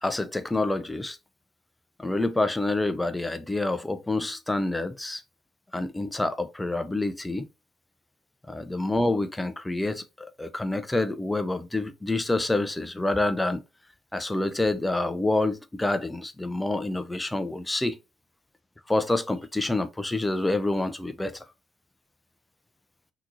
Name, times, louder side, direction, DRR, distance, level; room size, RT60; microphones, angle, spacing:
voice 1, 0.0-1.2 2.0-5.2 5.7-7.5 8.5-13.6 14.1-18.0 18.9-21.5, left 2 dB, 10° left, 0.5 m, -27 dB
5.8 x 2.9 x 2.7 m
figure-of-eight pair, 50°, 0 cm